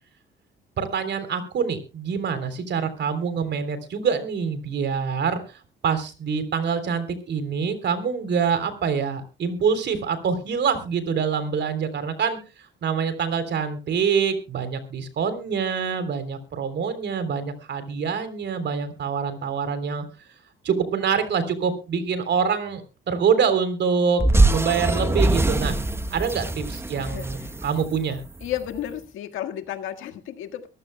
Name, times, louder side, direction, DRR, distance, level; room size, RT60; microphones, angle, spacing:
voice 1, 0.8-12.4 12.8-20.0 20.6-22.8 23.1-24.2 24.5-25.8 26.1-28.2, right 6 dB, 60° right, 11 dB, 3.4 m, -25 dB
sound 1, 24.2-28.6, right 2 dB, 10° right, 1.0 m, -23 dB
voice 2, 27.0-27.5 28.4-30.7, left 11 dB, 90° left, 6 dB, 1.7 m, -33 dB
23.0 x 14.5 x 2.2 m, 0.31 s
cardioid pair, 90°, 20 cm